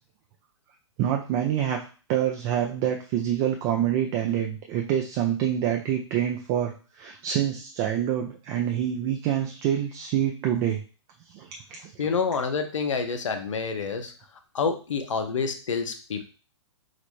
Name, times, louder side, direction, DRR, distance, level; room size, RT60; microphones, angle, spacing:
voice 1, 1.0-1.8 2.1-10.8 11.3-11.5 11.8-11.9, right 10 dB, 30° right, 2 dB, 0.4 m, -26 dB
voice 2, 12.0-14.1 14.5-16.3, left 5 dB, 85° left, 8 dB, 0.6 m, -28 dB
4.0 x 2.0 x 3.1 m, 0.37 s
hypercardioid pair, 135°, 16 cm